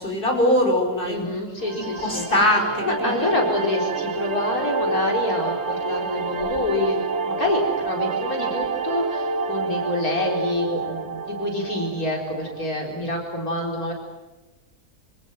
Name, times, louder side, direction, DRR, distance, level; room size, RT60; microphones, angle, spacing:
voice 1, 0.0-1.3 1.7-3.4, left 1 dB, 35° left, 3 dB, 5.5 m, -22 dB
voice 2, 1.1-2.2 2.8-13.9, left 1 dB, 65° left, 1 dB, 4.9 m, -27 dB
sound 1, 1.6-12.7, right 4 dB, 45° right, 1.5 m, -28 dB
26.0 x 26.0 x 7.7 m, 1.1 s
omnidirectional pair, 1.6 m